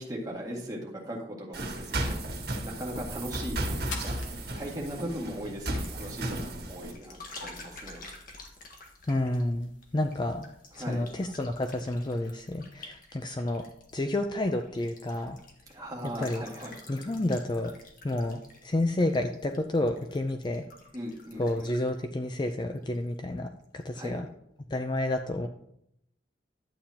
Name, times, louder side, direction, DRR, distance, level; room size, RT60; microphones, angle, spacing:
voice 1, 0.0-2.2 2.6-4.2 4.6-8.0 10.7-11.1 15.7-16.8 20.9-21.7 23.9-24.2, equal, 20° right, -3 dB, 2.0 m, -38 dB
sound 1, 1.5-6.9, right 1 dB, 60° right, 1.8 m, -34 dB
sound 2, 1.6-11.1, left 4 dB, 85° left, 1.5 m, -51 dB
sound 3, 4.8-23.2 23.5-23.9, left 2 dB, 50° left, 1.6 m, -51 dB
voice 2, 9.1-10.4 10.8-13.6 13.9-15.4 16.2-16.4 16.9-17.7 18.0-20.6 21.4-24.3 24.7-25.5, left 1 dB, 25° left, 6 dB, 0.4 m, -30 dB
11.5 x 8.6 x 2.9 m, 0.76 s
head